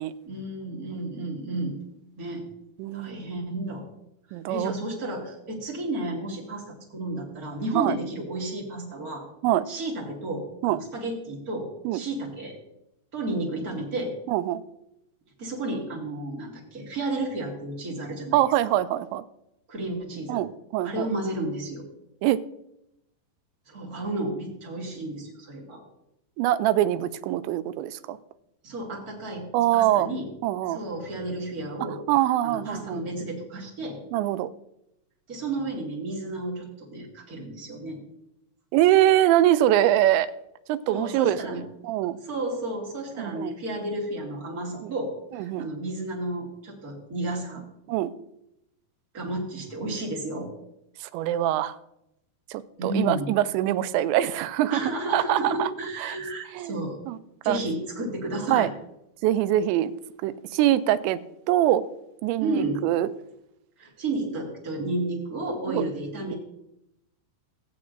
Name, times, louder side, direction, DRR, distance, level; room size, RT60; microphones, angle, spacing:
voice 1, 0.2-1.8 2.2-2.5 2.9-3.8 4.3-9.2 9.7-12.6 13.1-14.1 15.4-18.8 19.7-20.4 20.8-21.8 23.7-25.8 28.6-29.5 29.7-30.3 30.7-32.0 32.4-34.0 35.3-38.0 40.9-41.6 42.2-47.6 49.1-50.5 52.8-53.3 54.7-57.0 57.4-58.7 62.4-62.8 63.8-66.4, right 2 dB, 40° right, -2 dB, 1.3 m, -32 dB
voice 2, 2.8-3.2 4.3-4.7 7.8-7.9 9.4-9.7 10.6-10.8 11.9-12.0 14.3-14.6 18.3-19.2 20.3-21.1 22.2-22.4 26.4-28.2 29.5-30.1 30.4-30.8 32.1-33.0 34.1-34.5 38.7-40.3 40.7-42.2 43.2-43.6 44.8-44.9 45.5-45.7 47.9-48.1 51.0-51.8 52.5-54.8 55.1-55.7 56.0-56.2 56.6-57.2 57.5-57.6 58.5-58.7 59.2-59.9 60.2-61.2 61.5-61.8 62.2-63.1 65.7-65.8, right 13 dB, 85° right, 14 dB, 2.8 m, -23 dB
17.5 x 8.7 x 2.6 m, 0.83 s
omnidirectional pair, 5.1 m